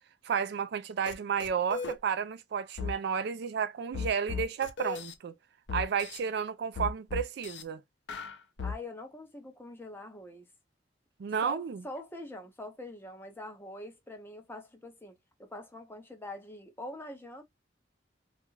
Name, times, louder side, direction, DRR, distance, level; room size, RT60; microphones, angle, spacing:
voice 1, 0.2-5.3 5.7-7.8 11.2-11.8, right 7 dB, 65° right, 0.3 m, -32 dB
sound 1, 1.1-1.2 1.4-2.0 2.8-2.9 3.9-5.1 5.7-6.2 6.8-7.6 8.1-8.8, left 5 dB, 75° left, 0.5 m, -36 dB
voice 2, 8.6-10.5 11.4-17.4, left 1 dB, 15° left, 0.7 m, -44 dB
2.4 x 2.2 x 3.0 m
head